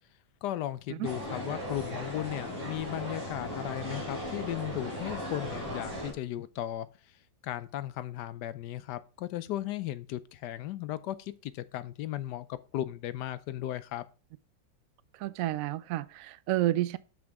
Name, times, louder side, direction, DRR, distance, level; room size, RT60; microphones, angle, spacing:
voice 1, 0.4-6.9 7.4-14.0, left 13 dB, 75° left, 1.1 m, -36 dB
sound 1, 1.0-6.1, equal, 30° right, 3.6 m, -37 dB
voice 2, 15.1-17.0, right 15 dB, 80° right, 0.7 m, -30 dB
7.4 x 6.1 x 3.5 m
omnidirectional pair, 2.0 m